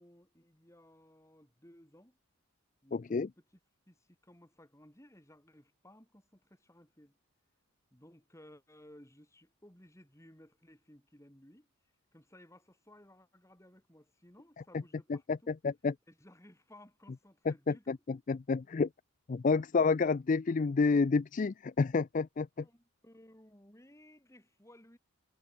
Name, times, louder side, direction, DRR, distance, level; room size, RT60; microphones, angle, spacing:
voice 1, 0.0-2.2 2.8-3.3 3.9-7.2 7.9-11.7 12.1-15.5 16.1-18.0 22.6-25.0, left 1 dB, 15° left, 4.3 m, -59 dB
voice 2, 2.9-3.3 15.1-15.9 17.5-18.9 19.3-22.5, left 4 dB, 35° left, 0.4 m, -29 dB
head